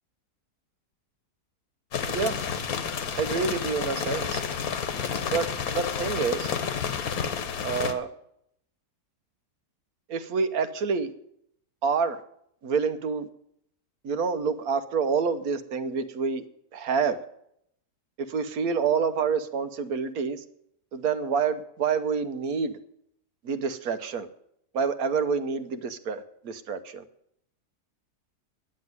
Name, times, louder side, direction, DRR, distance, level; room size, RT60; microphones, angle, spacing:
sound 1, 1.9-7.9, left 7 dB, 65° left, 1.5 m, -30 dB
voice 1, 3.1-4.4 5.3-6.5 7.6-8.1 10.1-11.1 11.8-12.2 12.6-13.3 14.0-16.4 16.7-17.2 18.2-20.4 20.9-22.8 23.4-24.3 24.7-27.0, right 5 dB, 65° right, 11 dB, 1.3 m, -27 dB
10.5 x 7.6 x 9.4 m, 0.73 s
omnidirectional pair, 1.7 m